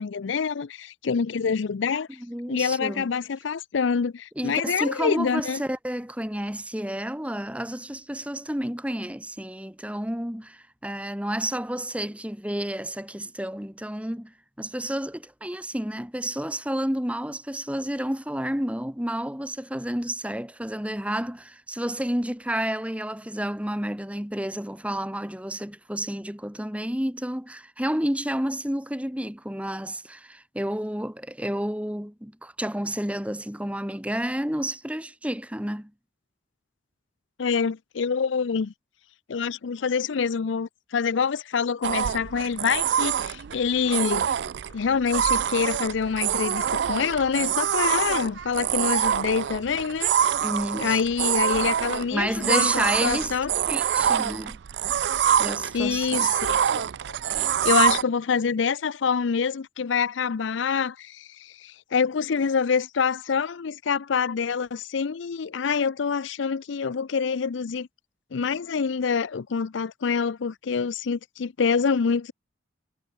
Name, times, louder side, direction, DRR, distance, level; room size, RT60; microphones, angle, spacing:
voice 1, 0.0-2.1 2.5-5.6 37.4-38.7 39.3-44.3 44.7-50.1 50.8-53.5 55.7-67.9 68.3-72.3, left 6 dB, 75° left, 0.5 m, -26 dB
voice 2, 2.2-3.1 4.4-35.9 50.4-51.0 52.1-54.6 55.4-56.3, right 1 dB, 5° right, 1.9 m, -30 dB
sound 1, 41.8-58.0, right 9 dB, 65° right, 0.4 m, -25 dB
head